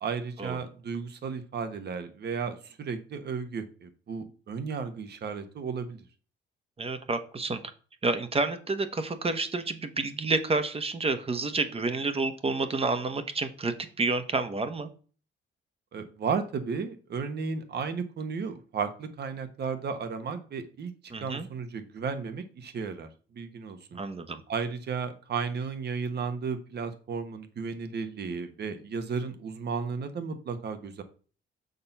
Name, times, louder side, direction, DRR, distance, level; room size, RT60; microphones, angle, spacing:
voice 1, 0.0-6.0 15.9-24.0 24.5-31.0, right 5 dB, 55° right, 9 dB, 1.4 m, -34 dB
voice 2, 6.8-7.6 8.0-14.9 21.1-21.5 23.9-24.4, right 3 dB, 30° right, 9 dB, 1.1 m, -29 dB
6.7 x 4.4 x 5.4 m, 0.39 s
cardioid pair, 90°, 20 cm